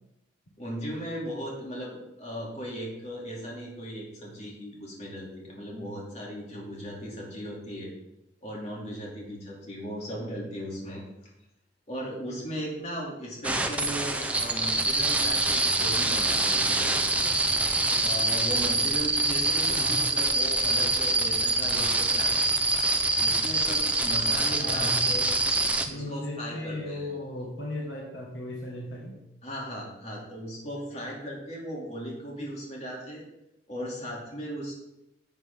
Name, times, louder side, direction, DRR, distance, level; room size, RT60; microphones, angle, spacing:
voice 1, 0.6-7.9 8.4-11.0 11.9-17.0 18.0-22.4 23.2-25.3 25.9-27.1 29.4-33.2 33.7-34.7, equal, 40° left, -3 dB, 2.6 m, -37 dB
sound 1, 13.4-25.9, right 2 dB, 5° right, 0.6 m, -25 dB
voice 2, 19.8-20.1 24.6-25.1 25.8-29.1, left 1 dB, 75° left, -1 dB, 1.5 m, -36 dB
10.5 x 7.3 x 3.6 m, 0.90 s
head